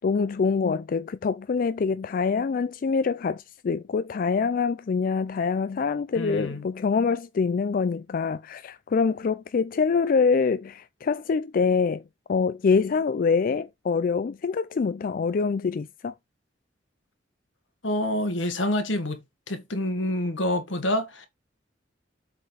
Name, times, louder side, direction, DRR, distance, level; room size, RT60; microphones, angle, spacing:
voice 1, 0.0-12.0 12.3-16.1, left 5 dB, 45° left, 0.4 m, -25 dB
voice 2, 6.2-6.7 17.8-21.3, left 1 dB, 80° left, 1.7 m, -27 dB
7.7 x 4.1 x 4.0 m
head